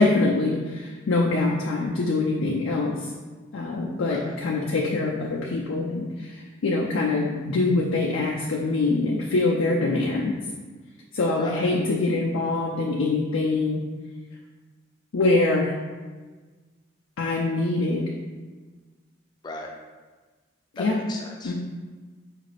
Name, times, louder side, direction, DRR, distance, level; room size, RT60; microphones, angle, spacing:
voice 1, 0.0-3.1 3.5-10.4 11.1-13.8 15.1-15.8 17.2-18.1 20.7-21.0 21.4-21.5, left 2 dB, 85° left, -2 dB, 0.4 m, -24 dB
voice 2, 11.4-11.7 19.4-19.7 20.8-21.5, left 2 dB, 20° left, 1 dB, 0.4 m, -36 dB
4.9 x 2.4 x 3.1 m, 1.3 s
head